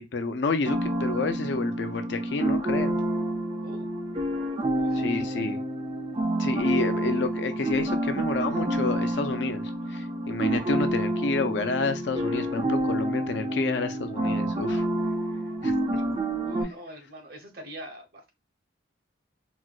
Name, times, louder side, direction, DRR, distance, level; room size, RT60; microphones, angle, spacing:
voice 1, 0.0-2.9 4.9-5.6 6.4-9.6 9.9-14.9 15.6-16.0, left 3 dB, 75° left, 0.5 m, -29 dB
sound 1, 0.6-16.6, right 1 dB, 30° right, 0.4 m, -28 dB
voice 2, 4.8-5.4 16.4-18.3, equal, 55° right, 0.8 m, -43 dB
4.0 x 2.2 x 2.3 m
head